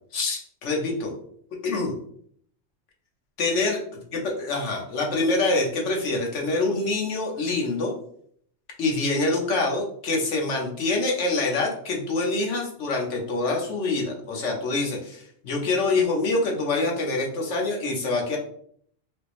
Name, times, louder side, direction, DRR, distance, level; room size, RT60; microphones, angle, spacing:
voice 1, 0.1-1.1 1.6-1.9 3.4-3.8 4.1-7.9 8.8-18.4, left 3 dB, 90° left, 0 dB, 1.2 m, -25 dB
4.9 x 2.0 x 3.0 m, 0.63 s
omnidirectional pair, 1.2 m